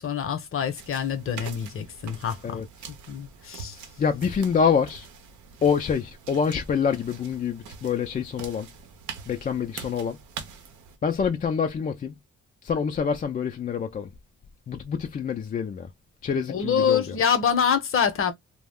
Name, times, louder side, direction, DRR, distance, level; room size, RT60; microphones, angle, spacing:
voice 1, 0.0-2.6 3.1-3.8 16.5-18.3, left 7 dB, 45° left, 0.8 m, -25 dB
sound 1, 0.8-11.0, right 6 dB, 75° right, 0.7 m, -44 dB
voice 2, 4.0-5.1 5.6-8.7 9.3-10.2 11.0-12.1 12.6-14.1 14.7-15.9 16.2-17.2, left 6 dB, 30° left, 0.4 m, -26 dB
2.3 x 2.1 x 3.4 m
cardioid pair, 90°, 30 cm